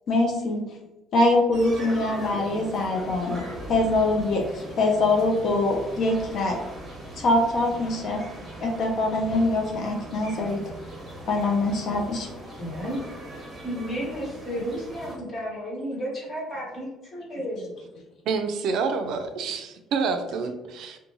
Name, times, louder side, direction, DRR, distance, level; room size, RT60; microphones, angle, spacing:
voice 1, 0.1-0.6 1.1-6.6 7.2-8.2 8.6-10.6 11.3-12.3, left 2 dB, 50° left, 1 dB, 0.4 m, -23 dB
sound 1, 1.5-15.2, right 1 dB, 15° right, 0.9 m, -40 dB
voice 2, 12.6-13.0 13.6-17.7, equal, 30° left, -5 dB, 1.1 m, -32 dB
voice 3, 18.3-21.0, right 5 dB, 65° right, 6 dB, 0.3 m, -28 dB
2.5 x 2.2 x 2.9 m, 1.0 s
cardioid pair, 140°, 0 cm